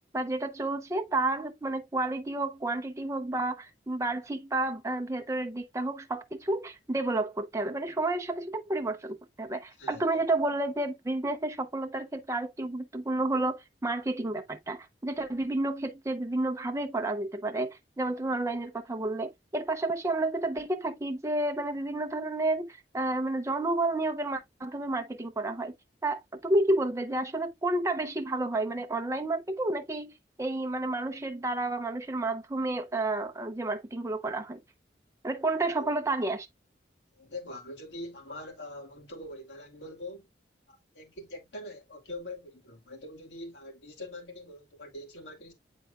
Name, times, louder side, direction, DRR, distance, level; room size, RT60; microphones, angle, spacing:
voice 1, 0.1-22.7 22.9-25.7 26.0-30.1 30.4-34.6 35.2-36.5, right 2 dB, 15° right, 0.6 m, -30 dB
voice 2, 9.8-10.2 35.6-35.9 37.2-40.3 40.7-45.5, left 1 dB, 85° left, 3.0 m, -43 dB
8.9 x 4.5 x 2.4 m
head